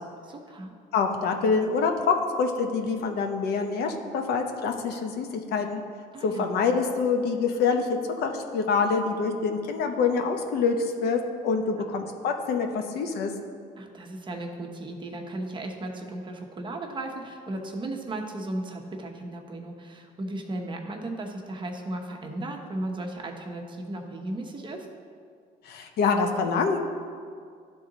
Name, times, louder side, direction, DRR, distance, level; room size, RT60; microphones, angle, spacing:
voice 1, 0.3-0.7 6.1-6.5 13.8-24.9, right 1 dB, 30° right, 1 dB, 0.9 m, -35 dB
voice 2, 0.9-5.8 6.2-13.3 25.6-26.8, left 5 dB, 70° left, 5 dB, 0.8 m, -26 dB
11.5 x 3.8 x 3.9 m, 2.2 s
cardioid pair, 110°, 17 cm